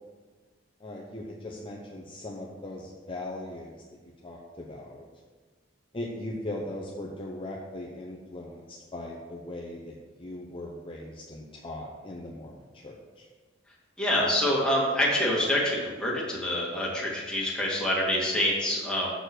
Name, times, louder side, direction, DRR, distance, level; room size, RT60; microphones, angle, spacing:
voice 1, 0.8-3.8 4.0-5.0 5.9-13.3, left 1 dB, 30° left, -1 dB, 0.8 m, -39 dB
voice 2, 14.0-19.1, left 1 dB, 5° left, -5 dB, 2.1 m, -26 dB
7.1 x 6.6 x 6.1 m, 1.4 s
head